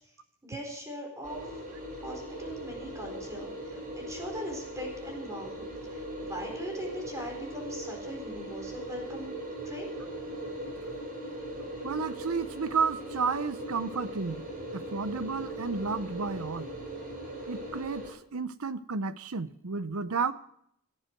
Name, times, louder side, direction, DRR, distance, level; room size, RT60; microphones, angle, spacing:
voice 1, 0.4-1.6 2.0-5.6 5.9-9.3 9.6-9.9, right 1 dB, 15° right, 1 dB, 4.3 m, -40 dB
sound 1, 1.2-18.1, right 1 dB, 40° right, 4.3 m, -39 dB
voice 2, 11.8-14.4 14.7-16.7 17.4-20.3, right 5 dB, 75° right, 14 dB, 0.8 m, -32 dB
17.5 x 11.0 x 4.6 m, 0.71 s
head